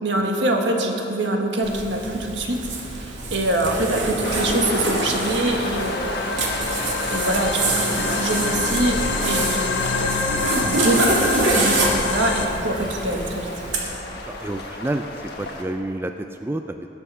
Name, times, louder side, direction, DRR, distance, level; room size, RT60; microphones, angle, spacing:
voice 1, 0.0-6.2 7.1-10.2 10.6-13.5, right 1 dB, 75° right, 2 dB, 1.6 m, -25 dB
Zipper (clothing), 1.6-13.8, right 2 dB, 90° right, 2.1 m, -26 dB
sound 1, 4.2-15.6, left 2 dB, 60° left, 1.4 m, -31 dB
sound 2, 5.6-12.5, left 5 dB, 80° left, 1.2 m, -27 dB
voice 2, 14.3-16.9, right 1 dB, 10° right, 6 dB, 0.3 m, -29 dB
20.5 x 7.0 x 5.5 m, 2.9 s
head